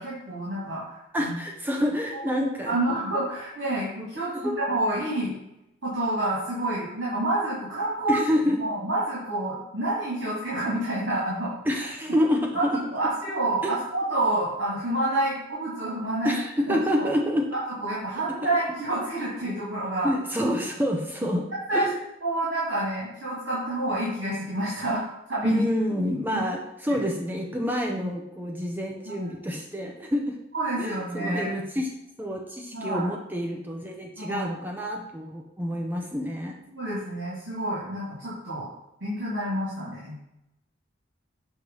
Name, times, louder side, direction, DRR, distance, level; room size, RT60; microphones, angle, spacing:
voice 1, 0.0-1.3 1.8-1.9 2.1-2.2 2.7-5.4 5.8-8.2 8.5-11.8 12.5-16.4 16.7-17.1 17.5-20.1 21.7-21.9 22.2-25.0 25.3-25.6 28.0-28.1 29.2-29.3 30.5-31.5 32.7-33.1 34.2-34.5 36.7-38.7 39.0-40.2, right 1 dB, 65° right, -8 dB, 2.3 m, -28 dB
voice 2, 1.1-2.7 4.4-4.5 8.1-8.6 11.7-12.9 13.6-13.7 16.2-17.5 20.0-21.4 21.7-21.9 25.4-30.4 30.8-31.9 32.2-36.6, equal, 10° right, 1 dB, 0.6 m, -27 dB
6.3 x 3.1 x 5.3 m, 0.87 s
head